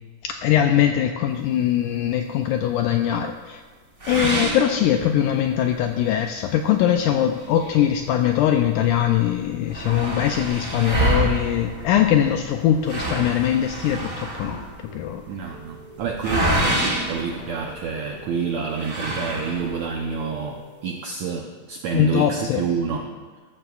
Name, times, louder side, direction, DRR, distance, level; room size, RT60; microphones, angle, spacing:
voice 1, 0.2-3.6 4.1-14.6 14.9-15.2 21.9-22.6, left 10 dB, 85° left, 5 dB, 1.8 m, -21 dB
sound 1, 4.0-5.5 5.9-6.0 6.5-6.6 7.3-8.7 9.0-9.1 9.3-18.1 18.7-19.9, right 1 dB, 25° right, 1.6 m, -27 dB
sound 2, 14.8-20.9, right 3 dB, 60° right, 0.9 m, -46 dB
voice 2, 15.3-23.1, right 5 dB, 80° right, 1 dB, 1.6 m, -28 dB
13.5 x 13.5 x 2.4 m, 1.5 s
omnidirectional pair, 4.1 m